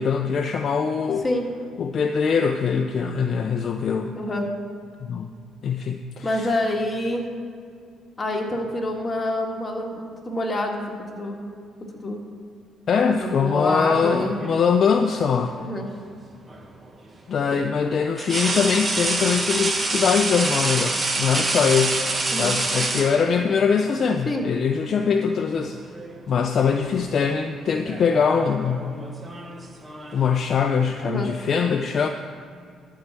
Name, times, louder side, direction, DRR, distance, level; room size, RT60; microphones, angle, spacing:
voice 1, 0.0-1.2 1.8-4.2 5.0-5.3 5.6-6.5 12.9-15.6 17.3-22.0 22.4-25.8 26.3-29.0 30.1-32.1, left 6 dB, 50° left, 5 dB, 0.5 m, -22 dB
voice 2, 4.2-4.5 6.2-7.3 8.2-10.8 11.1-11.4 11.9-12.2 13.2-14.4 15.6-15.9 22.3-22.5 24.3-24.4 31.0-31.3, left 1 dB, 25° left, 0 dB, 1.8 m, -26 dB
sound 1, 13.9-14.7 16.5-16.7 18.2-23.6 24.8-25.0 25.4-26.2 26.5-26.8 27.7-30.3, right 2 dB, 25° right, 1.3 m, -27 dB
12.0 x 4.7 x 7.4 m, 2.2 s
cardioid pair, 95°, 0 cm